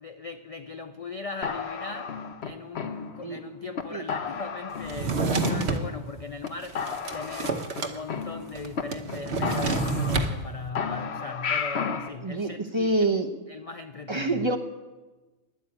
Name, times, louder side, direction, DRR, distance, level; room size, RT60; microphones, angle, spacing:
voice 1, 0.0-2.2 2.4-6.9 7.1-13.1 13.5-14.5, left 4 dB, 45° left, 8 dB, 0.5 m, -39 dB
sound 1, 1.4-3.4 3.8-3.9 4.1-5.1 5.4-6.1 6.4-6.5 6.8-8.8 9.1-9.2 9.4-10.5 10.8-12.1, left 6 dB, 60° left, 1.1 m, -33 dB
Drawer open or close, 4.8-5.9 6.5-8.0 8.2-8.3 8.5-10.3, right 3 dB, 60° right, 1.3 m, -28 dB
voice 2, 12.2-13.3 14.1-14.6, right 2 dB, 25° right, 5 dB, 0.9 m, -26 dB
12.5 x 10.5 x 8.8 m, 1.2 s
omnidirectional pair, 1.3 m